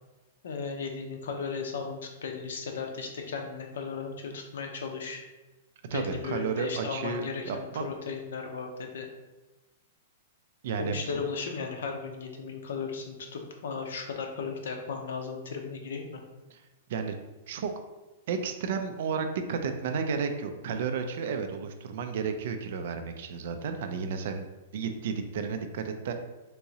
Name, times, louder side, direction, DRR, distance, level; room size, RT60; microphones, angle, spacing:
voice 1, 0.4-5.2 5.9-9.1 10.8-16.2, left 5 dB, 75° left, 3 dB, 0.6 m, -36 dB
voice 2, 5.9-7.9 10.6-11.3 16.5-16.6 16.9-17.1 17.5-17.7 18.3-24.4 24.7-26.1, right 5 dB, 50° right, 7 dB, 0.3 m, -32 dB
3.6 x 2.9 x 2.8 m, 1.1 s
supercardioid pair, 175°, 0 cm